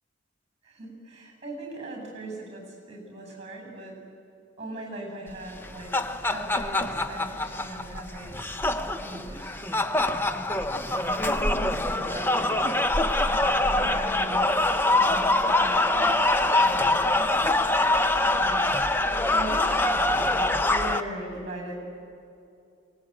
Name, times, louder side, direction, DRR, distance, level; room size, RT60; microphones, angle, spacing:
voice 1, 0.6-4.0 4.6-8.4 9.0-9.5 10.9-13.0 13.7-14.6 14.9-16.2 16.5-17.3 18.3-18.7 19.3-21.8, right 1 dB, 35° right, 3 dB, 7.6 m, -40 dB
sound 1, 5.5-21.0, left 2 dB, 10° left, 0.8 m, -24 dB
28.5 x 20.0 x 9.1 m, 2.6 s
head